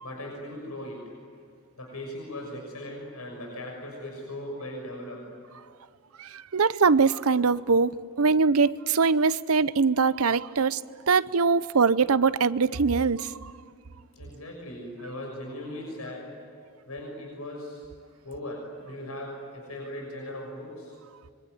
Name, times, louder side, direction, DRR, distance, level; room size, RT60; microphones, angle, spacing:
voice 1, 0.0-1.1 1.8-5.4 14.2-16.3 16.9-17.8 18.2-21.0, left 1 dB, 85° left, 0 dB, 6.4 m, -38 dB
voice 2, 6.2-10.8 11.1-13.5, right 4 dB, 70° right, 16 dB, 0.7 m, -22 dB
26.0 x 23.5 x 9.5 m, 2.3 s
head